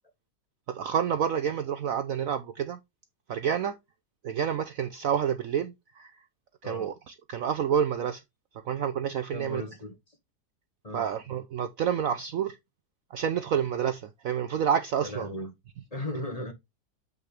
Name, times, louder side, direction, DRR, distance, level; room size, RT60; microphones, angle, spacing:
voice 1, 0.7-2.8 3.3-3.8 4.2-6.2 6.6-8.2 8.6-9.6 10.9-12.6 13.1-15.3, right 8 dB, 65° right, 0.9 m, -29 dB
voice 2, 9.3-10.2 10.8-11.1 15.0-15.5 15.9-16.5, left 1 dB, 20° left, 1.5 m, -37 dB
7.6 x 5.8 x 3.3 m
omnidirectional pair, 1.9 m